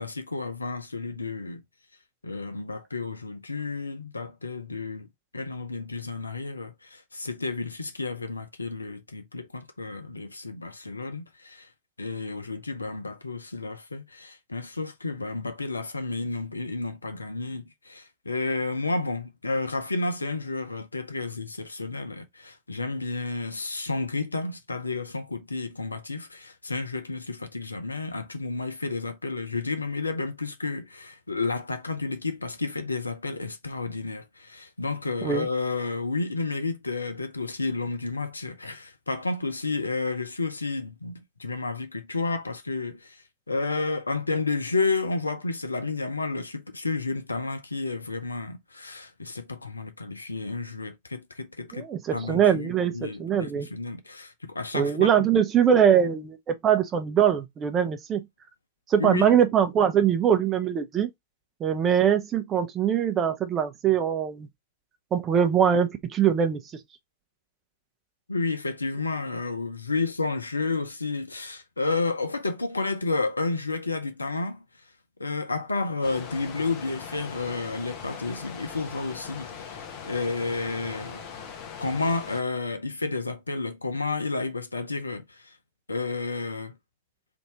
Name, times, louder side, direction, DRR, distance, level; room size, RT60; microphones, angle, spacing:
voice 1, 0.0-1.6 2.2-5.1 5.3-11.7 12.0-43.2 43.5-55.3 59.0-59.3 68.3-74.6 75.2-79.8 80.0-81.2 81.8-85.5 85.9-86.7, left 3 dB, 80° left, 0.6 m, -31 dB
voice 2, 51.7-53.7 54.7-58.2 58.9-61.1 61.6-64.5 65.1-66.6, right 8 dB, 25° right, 0.8 m, -22 dB
sound 1, 76.0-82.4, left 7 dB, 45° left, 0.9 m, -40 dB
3.6 x 2.7 x 4.2 m
figure-of-eight pair, 90°, 0 cm